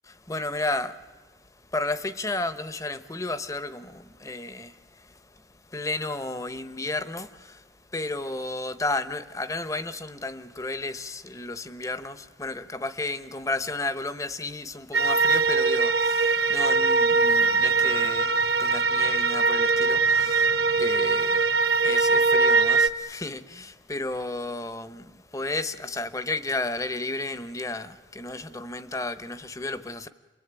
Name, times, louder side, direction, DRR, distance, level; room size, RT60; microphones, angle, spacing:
voice 1, 0.1-30.1, left 2 dB, 20° left, 0.9 m, -33 dB
sound 1, 14.9-22.9, right 4 dB, 60° right, 1.2 m, -22 dB
29.5 x 22.5 x 9.0 m
head